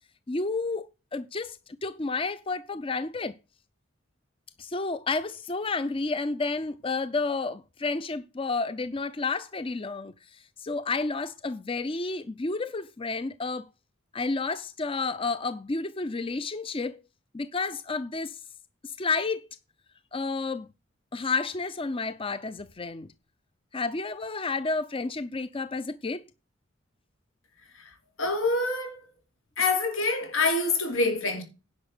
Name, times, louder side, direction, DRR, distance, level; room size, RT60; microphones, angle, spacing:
voice 1, 0.3-3.3 4.6-13.7 14.1-17.0 17.3-18.4 18.8-19.4 20.1-20.7 21.1-23.1 23.7-26.2, left 3 dB, 25° left, 0.5 m, -31 dB
voice 2, 27.7-29.1 29.6-31.4, left 3 dB, 80° left, 4.8 m, -26 dB
10.5 x 6.4 x 6.7 m
head